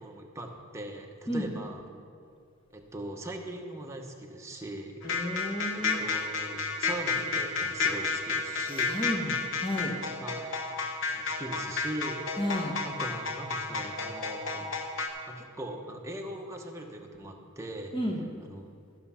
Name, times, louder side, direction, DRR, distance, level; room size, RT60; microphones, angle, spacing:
voice 1, 0.0-1.8 2.7-5.0 5.7-9.0 10.2-10.5 11.1-14.7 15.3-18.0 18.4-18.7, right 1 dB, 15° right, 1 dB, 0.8 m, -40 dB
sound 1, 5.0-15.1, left 4 dB, 60° left, 0.9 m, -31 dB
voice 2, 5.0-6.0 8.9-9.9 12.4-12.7 17.9-18.2, equal, 25° left, 1 dB, 1.1 m, -32 dB
13.5 x 5.9 x 5.6 m, 2.2 s
head